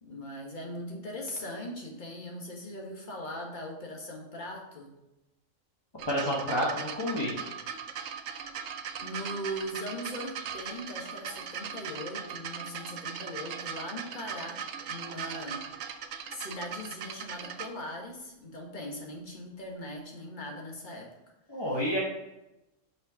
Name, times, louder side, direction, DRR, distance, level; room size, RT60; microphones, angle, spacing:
voice 1, 0.0-4.9 9.0-14.6 14.9-15.6 16.3-21.1 21.7-21.8, equal, 40° left, -1 dB, 1.7 m, -40 dB
sound 1, 6.0-17.7 18.6-18.7, right 7 dB, 85° right, 1.0 m, -39 dB
voice 2, 6.1-7.3 21.5-22.0, equal, 20° left, -5 dB, 1.2 m, -29 dB
6.3 x 5.6 x 4.9 m, 0.94 s
omnidirectional pair, 1.3 m